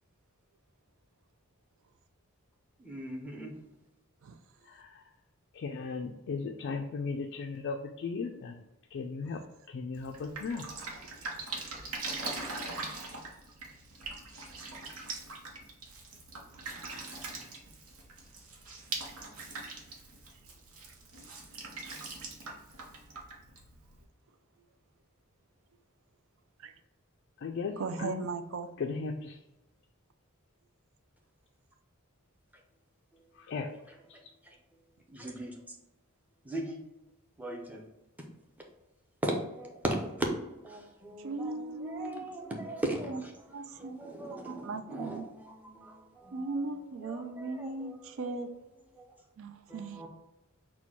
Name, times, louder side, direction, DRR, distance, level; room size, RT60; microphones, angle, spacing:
voice 1, 2.8-3.5 33.7-34.0 34.4-34.6 35.1-35.8 36.4-36.8 37.4-37.8 39.2-43.3 43.7-46.7 47.0-48.3 48.9-49.1 49.7-50.1, right 1 dB, 5° right, 0.7 m, -38 dB
voice 2, 5.6-8.6 8.9-9.4 9.7-10.6 27.4-28.2 28.8-29.4 33.5-33.7, left 4 dB, 55° left, 0.3 m, -36 dB
Drip, 9.9-24.0, right 3 dB, 85° right, 0.9 m, -42 dB
voice 3, 27.8-28.7 41.2-42.2 43.1-43.2 43.5-44.1 44.4-45.3 46.3-48.5 49.4-50.1, right 3 dB, 65° right, 0.4 m, -38 dB
4.3 x 2.2 x 4.4 m
head